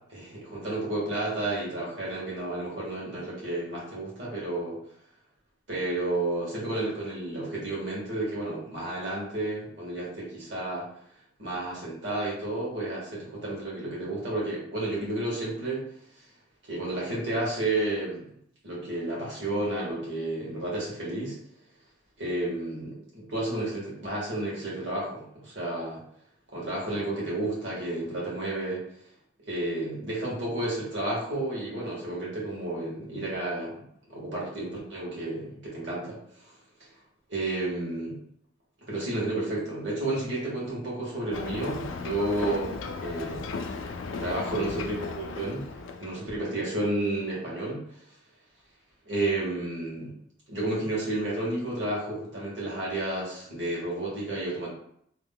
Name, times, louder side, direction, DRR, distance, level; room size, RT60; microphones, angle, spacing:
voice 1, 0.1-4.8 5.7-10.8 11.4-15.8 16.7-18.2 18.6-21.4 22.2-26.0 26.5-28.8 29.5-33.8 34.1-36.2 37.3-38.2 38.9-42.7 43.0-43.5 44.2-45.6 46.0-48.0 49.1-50.1 50.5-54.7, right 2 dB, 75° right, -5 dB, 1.4 m, -31 dB
Ocean, 41.3-46.2, left 4 dB, 90° left, 0.3 m, -36 dB
2.9 x 2.2 x 3.6 m, 0.69 s
head